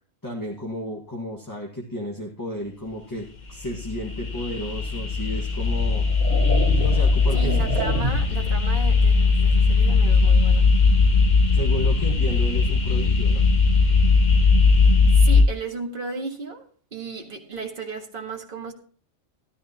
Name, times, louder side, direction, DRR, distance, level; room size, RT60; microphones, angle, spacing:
voice 1, 0.2-6.0 6.8-7.6 11.5-13.5, left 1 dB, 15° left, 1.7 m, -33 dB
sound 1, 3.4-15.4, left 4 dB, 35° left, 1.2 m, -19 dB
sound 2, 4.8-5.0 5.7-8.5, right 2 dB, 65° right, 2.8 m, -30 dB
voice 2, 7.3-10.7 15.1-18.7, right 4 dB, 45° right, 1.9 m, -34 dB
13.5 x 12.5 x 3.0 m
omnidirectional pair, 1.3 m